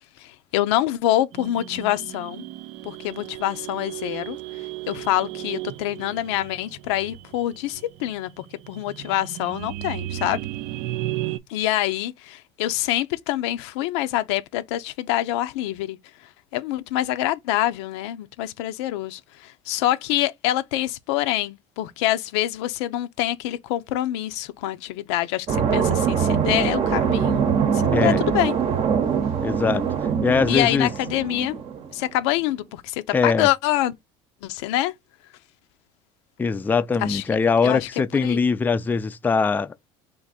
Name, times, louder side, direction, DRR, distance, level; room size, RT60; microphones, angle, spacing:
voice 1, 0.2-2.4 2.8-4.4 4.9-10.4 11.5-16.0 16.5-27.5 27.7-28.5 30.5-31.6 31.9-33.9 34.4-34.9 37.0-37.2 37.6-37.9 38.2-38.4, left 14 dB, 90° left, 0.5 m, -26 dB
sound 1, 1.3-11.4, right 15 dB, 65° right, 0.4 m, -35 dB
sound 2, 25.5-31.9, right 7 dB, 45° right, 0.8 m, -23 dB
voice 2, 27.9-28.2 29.4-29.8 30.2-30.9 33.1-33.5 36.4-39.7, left 5 dB, 15° left, 0.3 m, -22 dB
3.6 x 2.6 x 4.0 m
supercardioid pair, 105°, 14 cm